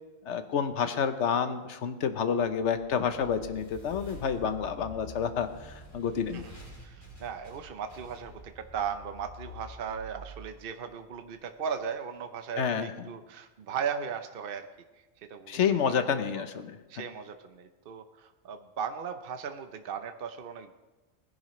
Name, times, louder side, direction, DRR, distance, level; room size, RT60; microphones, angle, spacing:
voice 1, 0.2-6.5 12.6-13.1 15.5-16.8, left 7 dB, 70° left, 9 dB, 1.2 m, -29 dB
sound 1, 2.8-11.6, equal, 25° left, 3.3 m, -48 dB
voice 2, 6.8-14.7 15.3-15.6 15.9-16.0 16.3-16.4 16.9-20.7, right 7 dB, 55° right, 7 dB, 0.9 m, -37 dB
20.0 x 10.5 x 3.1 m, 1.1 s
omnidirectional pair, 1.2 m